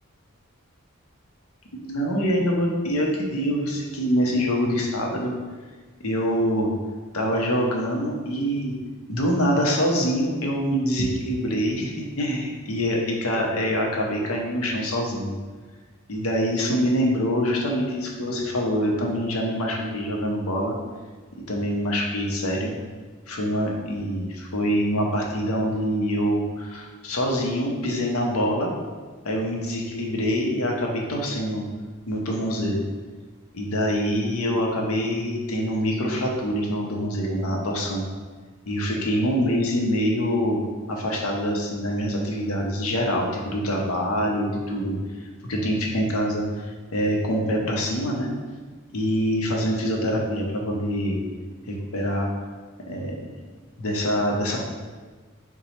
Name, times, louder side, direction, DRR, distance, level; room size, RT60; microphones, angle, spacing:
voice 1, 1.7-5.3 6.0-6.7 7.1-8.7 9.1-15.3 16.1-20.7 21.5-22.7 23.3-28.7 29.2-31.7 32.1-32.8 33.5-38.1 38.7-40.6 40.9-45.0 45.4-48.3 48.9-51.2 51.7-52.3 52.9-53.1 53.8-54.6, equal, 85° left, 0 dB, 0.7 m, -25 dB
4.0 x 2.2 x 4.3 m, 1.4 s
head